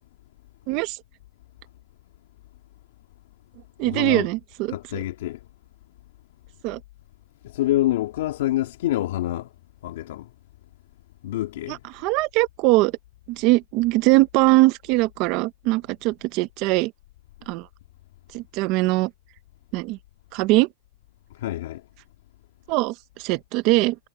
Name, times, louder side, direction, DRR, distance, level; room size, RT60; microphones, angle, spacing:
voice 1, 0.7-1.0 3.8-5.0 6.6-6.8 11.7-12.9 13.3-16.9 17.5-17.7 18.3-19.1 19.7-20.0 20.3-20.7 22.7-24.0, right 21 dB, 40° right, 0.8 m, -21 dB
voice 2, 3.8-4.3 4.7-5.4 7.4-9.5 9.8-10.3 11.2-11.8 21.3-21.8, left 14 dB, 65° left, 2.4 m, -26 dB
supercardioid pair, 160°, 0 cm